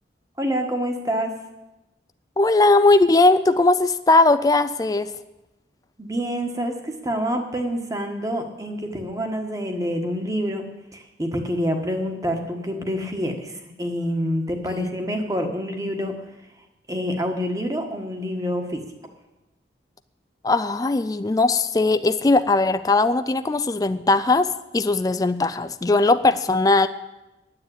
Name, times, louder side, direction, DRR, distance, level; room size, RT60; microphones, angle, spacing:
voice 1, 0.4-1.3 6.0-16.1 16.9-18.8, equal, 20° right, 4 dB, 1.4 m, -27 dB
voice 2, 2.4-5.1 14.8-14.9 20.4-26.9, left 2 dB, 20° left, 12 dB, 0.3 m, -19 dB
9.7 x 9.6 x 8.6 m, 1.0 s
head